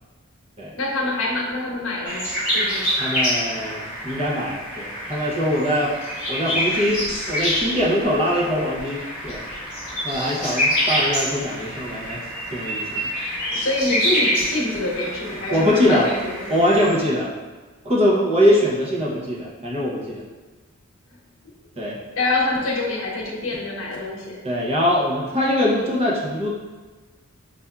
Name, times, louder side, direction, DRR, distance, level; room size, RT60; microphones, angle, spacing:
voice 1, 0.7-2.3 2.5-2.9 13.5-16.5 22.2-24.4, left 2 dB, 75° left, -3 dB, 0.9 m, -26 dB
sound 1, 2.1-17.0, equal, 5° right, 1.2 m, -26 dB
voice 2, 3.0-5.9 6.3-9.4 10.0-12.2 12.5-13.1 15.5-16.1 16.5-17.3 17.8-20.2 21.8-22.0 24.4-26.5, equal, 30° right, -4 dB, 0.7 m, -22 dB
5.5 x 2.5 x 2.3 m, 1.3 s
head